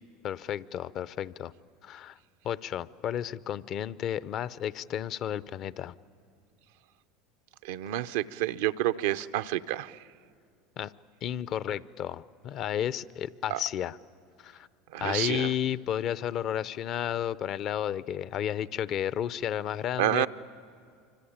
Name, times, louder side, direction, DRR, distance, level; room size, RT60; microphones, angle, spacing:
voice 1, 0.2-1.5 1.8-2.2 2.4-5.9 10.8-10.9 11.2-14.0 14.4-14.7 15.0-20.3, left 10 dB, 50° left, 0.6 m, -32 dB
voice 2, 7.6-10.0 13.5-13.6 14.9-15.5 20.0-20.3, right 13 dB, 75° right, 0.6 m, -29 dB
25.5 x 25.0 x 8.8 m
hypercardioid pair, 90°, 0 cm